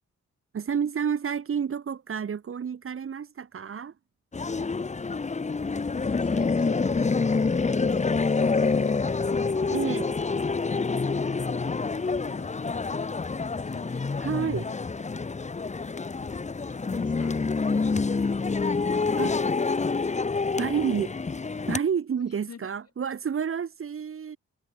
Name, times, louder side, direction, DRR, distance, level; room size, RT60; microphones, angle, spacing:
voice 1, 0.5-3.9 9.7-10.2 14.2-14.7 19.2-19.4 20.6-21.2 21.7-24.4, right 7 dB, 45° right, 1.1 m, -29 dB
sound 1, 4.3-21.8, left 4 dB, 25° left, 1.0 m, -27 dB
voice 2, 5.7-10.6 11.0-14.9 16.6-17.3 22.5-22.7, left 6 dB, 55° left, 7.6 m, -47 dB
cardioid pair, 85°, 29 cm